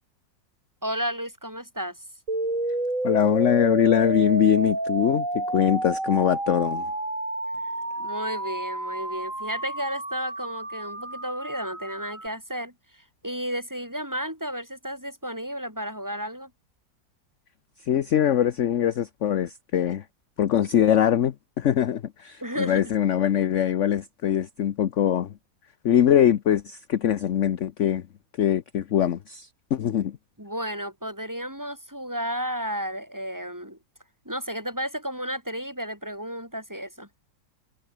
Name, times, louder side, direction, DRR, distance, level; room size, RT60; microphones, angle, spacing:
voice 1, 0.8-2.0 8.0-16.5 22.4-22.8 30.4-33.8 34.2-37.1, equal, 10° right, 6.1 m, -32 dB
sound 1, 2.3-12.3, right 2 dB, 40° right, 7.2 m, -30 dB
voice 2, 3.0-6.9 17.9-20.0 20.4-25.3 25.8-28.0 28.4-30.2, left 10 dB, 55° left, 0.9 m, -22 dB
omnidirectional pair, 2.0 m